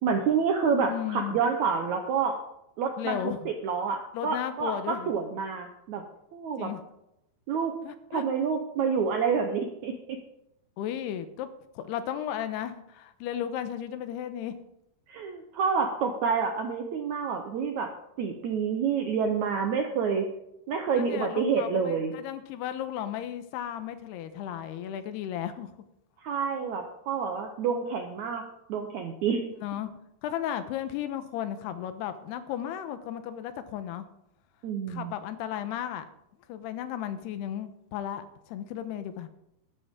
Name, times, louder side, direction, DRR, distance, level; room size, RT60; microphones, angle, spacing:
voice 1, 0.0-2.3 2.8-6.0 6.3-6.7 7.5-7.7 8.1-10.2 15.1-17.9 18.2-20.3 20.7-22.1 26.2-28.4 28.7-29.4 34.6-35.1, right 6 dB, 75° right, 4 dB, 1.7 m, -28 dB
voice 2, 0.9-1.4 3.0-3.5 4.1-5.1 6.6-6.8 7.8-8.2 10.8-11.5 11.8-14.5 21.0-25.7 29.6-29.9 30.2-34.1 34.9-36.1 36.5-39.3, left 10 dB, 85° left, 10 dB, 3.0 m, -34 dB
12.5 x 12.0 x 3.7 m, 0.82 s
omnidirectional pair, 4.6 m